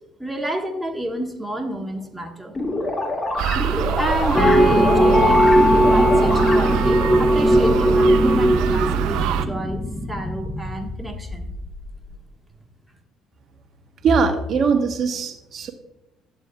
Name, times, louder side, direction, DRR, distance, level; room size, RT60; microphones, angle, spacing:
voice 1, 0.2-2.5 3.9-9.8 10.1-11.5, equal, 5° right, 1 dB, 1.6 m, -29 dB
sound 1, 2.5-7.0, left 1 dB, 35° left, 3.2 m, -26 dB
sound 2, 3.4-9.5, right 11 dB, 70° right, 0.4 m, -24 dB
sound 3, 4.3-11.9, equal, 15° left, 1.1 m, -18 dB
voice 2, 14.0-15.7, right 5 dB, 50° right, 6 dB, 1.1 m, -21 dB
11.5 x 7.4 x 2.3 m, 0.87 s
hypercardioid pair, 55°, 0 cm